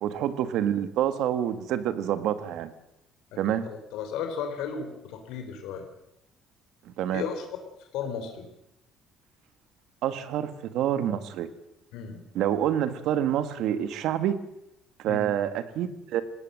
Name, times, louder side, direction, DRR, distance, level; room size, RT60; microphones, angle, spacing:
voice 1, 0.0-2.7 3.4-3.6 6.8-7.2 10.0-11.5 12.3-14.4 15.0-16.2, right 10 dB, 70° right, 12 dB, 1.7 m, -27 dB
voice 2, 3.9-5.9 7.1-7.5 7.8-8.5 11.9-12.2 15.1-15.3, left 6 dB, 85° left, 6 dB, 3.6 m, -34 dB
19.5 x 17.5 x 7.7 m, 0.83 s
cardioid pair, 150°, 0 cm